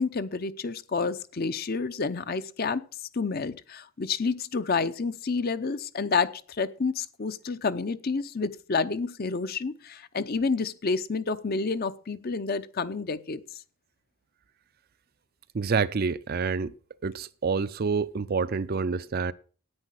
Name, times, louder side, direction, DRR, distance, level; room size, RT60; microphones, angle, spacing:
voice 1, 0.0-2.8 3.1-13.4, left 4 dB, 45° left, 0.6 m, -29 dB
voice 2, 15.5-16.7 17.0-19.3, right 5 dB, 45° right, 0.4 m, -27 dB
9.8 x 9.1 x 6.3 m
head